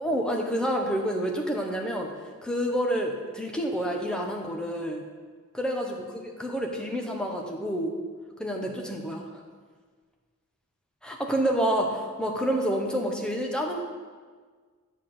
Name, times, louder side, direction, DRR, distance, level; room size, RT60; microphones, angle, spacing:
voice 1, 0.0-2.1 2.4-5.0 5.5-6.0 6.4-7.9 8.4-9.3 11.0-13.8, equal, 5° left, 1 dB, 0.9 m, -28 dB
8.2 x 5.9 x 6.7 m, 1.6 s
head